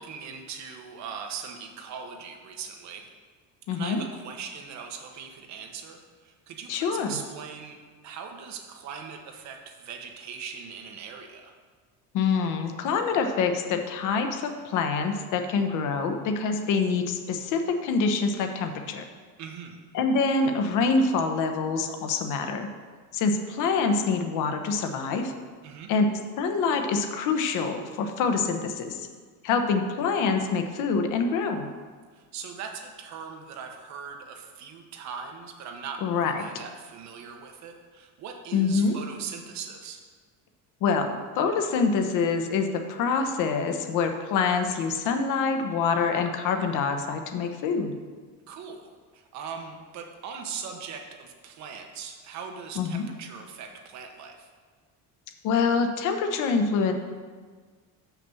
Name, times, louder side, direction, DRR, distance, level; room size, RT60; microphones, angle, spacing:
voice 1, 0.0-3.1 3.7-7.8 8.0-11.5 19.4-19.8 25.6-25.9 32.1-40.0 48.5-54.5, right 6 dB, 50° right, 3 dB, 1.1 m, -40 dB
voice 2, 3.7-4.0 6.7-7.2 12.1-19.0 19.9-22.7 23.1-25.3 25.9-26.1 26.4-29.1 29.4-31.7 36.0-36.4 38.5-39.0 40.8-41.1 41.3-47.9 52.8-53.0 55.4-56.9, left 5 dB, 60° left, 6 dB, 0.9 m, -25 dB
6.0 x 5.9 x 6.9 m, 1.5 s
cardioid pair, 165°, 35 cm